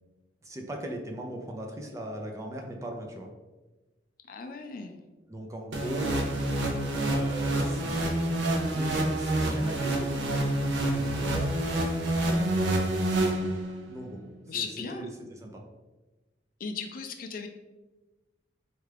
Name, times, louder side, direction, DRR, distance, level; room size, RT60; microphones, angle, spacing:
voice 1, 0.4-3.3 5.3-6.2 6.9-8.2 8.7-11.6 13.9-14.2 14.5-15.6, right 1 dB, 15° right, 1 dB, 0.5 m, -39 dB
voice 2, 4.3-5.0 6.0-6.2 12.3-12.7 14.5-15.1 16.6-17.5, left 5 dB, 50° left, 6 dB, 0.4 m, -37 dB
sound 1, 5.7-13.9, right 1 dB, 80° right, 0.6 m, -27 dB
4.3 x 2.4 x 3.3 m, 1.1 s
head